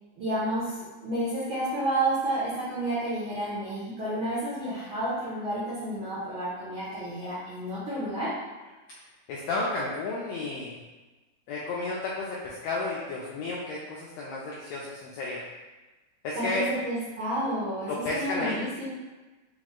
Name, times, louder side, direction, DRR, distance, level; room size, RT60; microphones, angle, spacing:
voice 1, 0.2-8.3 16.3-18.9, right 1 dB, 75° right, -10 dB, 1.1 m, -30 dB
voice 2, 9.3-10.8 11.5-15.4 16.2-16.7 17.9-18.6, left 3 dB, 80° left, -4 dB, 1.6 m, -32 dB
5.0 x 2.1 x 3.6 m, 1.2 s
omnidirectional pair, 3.5 m